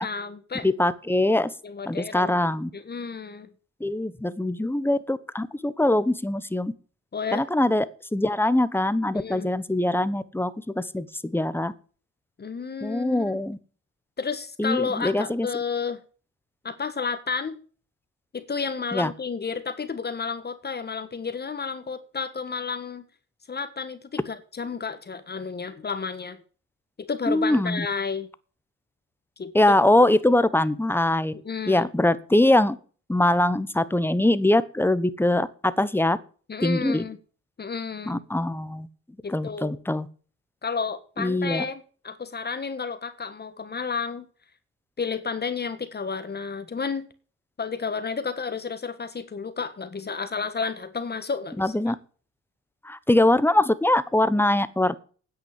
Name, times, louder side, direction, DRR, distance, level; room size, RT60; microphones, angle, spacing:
voice 1, 0.0-0.7 1.6-3.5 7.1-7.5 9.1-9.5 12.4-13.3 14.2-16.0 16.6-17.6 18.3-23.0 23.5-26.4 27.1-28.3 29.4-29.5 31.3-31.8 36.5-37.2 37.6-38.2 39.2-39.8 40.6-44.3 45.0-47.1 47.6-51.7, left 5 dB, 35° left, 1.5 m, -31 dB
voice 2, 0.6-1.5 1.9-2.7 3.8-6.7 7.3-7.9 8.1-11.7 12.8-13.6 14.6-15.5 18.9-19.1 27.3-27.9 29.5-31.3 31.7-32.8 33.1-36.2 36.6-37.0 38.1-38.9 39.3-40.1 41.2-41.6 51.6-51.9 52.8-55.0, left 1 dB, 5° left, 1.1 m, -22 dB
9.8 x 8.5 x 8.5 m
cardioid pair, 90°, 30 cm